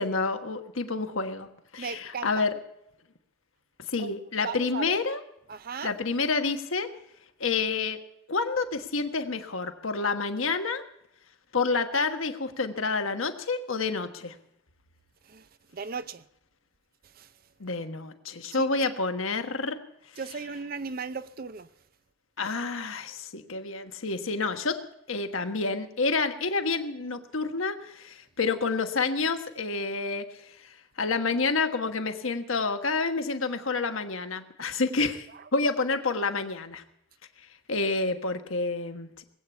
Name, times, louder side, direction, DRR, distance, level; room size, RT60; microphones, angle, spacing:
voice 1, 0.0-1.5 1.7-2.6 3.9-5.2 5.8-6.9 7.4-8.0 8.3-10.8 11.5-14.3 17.6-19.8 22.4-24.8 25.1-35.3 35.5-36.8 37.7-39.2, left 4 dB, 80° left, 1.4 m, -29 dB
voice 2, 1.8-2.4 4.0-4.1 4.4-5.0 5.5-5.9 15.3-15.5 15.7-16.2 17.2-17.3 18.5-18.7 20.2-21.7, right 5 dB, 45° right, 0.6 m, -36 dB
20.0 x 8.7 x 8.2 m
head